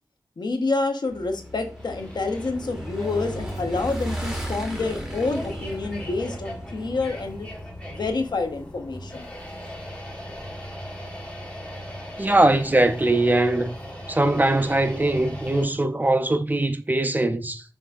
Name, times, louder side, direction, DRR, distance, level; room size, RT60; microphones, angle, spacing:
voice 1, 0.4-7.5 7.9-9.3, left 3 dB, 85° left, 0.7 m, -28 dB
Motorcycle / Engine, 1.1-8.1, right 1 dB, 10° right, 1.4 m, -36 dB
sound 1, 1.8-15.7, equal, 15° left, 1.5 m, -38 dB
voice 2, 12.2-13.8 14.1-17.6, right 2 dB, 25° right, 0.4 m, -21 dB
5.4 x 3.3 x 2.4 m
wide cardioid pair, 60°, 7 cm